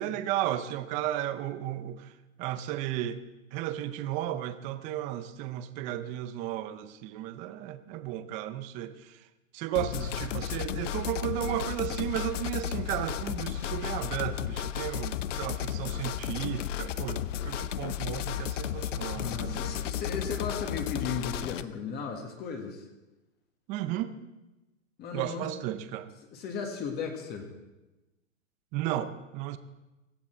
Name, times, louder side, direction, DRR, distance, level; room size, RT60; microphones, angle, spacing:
voice 1, 0.0-2.1 2.4-3.2 3.5-9.3 9.5-19.8 23.7-24.1 25.1-26.1 28.7-29.6, right 13 dB, 20° right, 0.5 m, -34 dB
sound 1, 9.8-21.6, left 10 dB, 65° left, 0.7 m, -33 dB
voice 2, 19.2-22.9 25.0-25.5 26.3-27.5, left 5 dB, 25° left, 1.7 m, -36 dB
17.5 x 13.0 x 4.5 m
hypercardioid pair, 140°, 39 cm